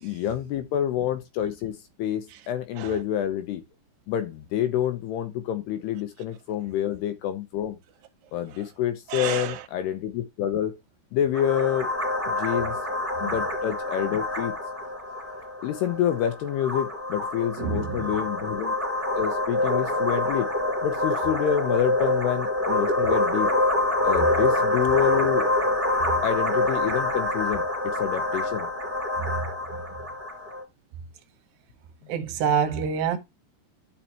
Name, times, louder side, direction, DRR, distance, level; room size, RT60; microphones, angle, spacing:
voice 1, 0.0-3.6 4.1-7.8 8.3-10.7 11.1-11.9 12.3-12.8 13.2-14.5 15.6-18.8 19.2-20.5 20.8-23.5 24.0-25.5 26.2-28.7, left 10 dB, 80° left, 2.6 m, -27 dB
voice 2, 9.1-9.6 13.2-13.4 17.6-18.1 29.3-29.4 32.1-33.2, right 7 dB, 70° right, 2.3 m, -27 dB
sound 1, 11.3-30.6, left 1 dB, 5° right, 2.5 m, -26 dB
11.5 x 5.6 x 2.9 m
omnidirectional pair, 5.3 m